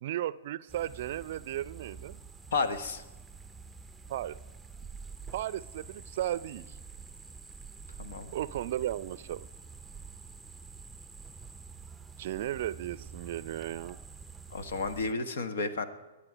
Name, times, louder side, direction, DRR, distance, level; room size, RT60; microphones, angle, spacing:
voice 1, 0.0-2.2 4.1-4.4 5.3-6.8 8.3-9.5 12.2-14.0, right 13 dB, 55° right, 18 dB, 0.5 m, -35 dB
sound 1, 0.7-15.1, right 5 dB, 5° right, 0.7 m, -48 dB
voice 2, 2.5-3.0 8.0-8.3 14.5-15.9, left 3 dB, 65° left, 10 dB, 1.4 m, -32 dB
22.5 x 8.7 x 5.1 m, 1.1 s
hypercardioid pair, 115°, 0 cm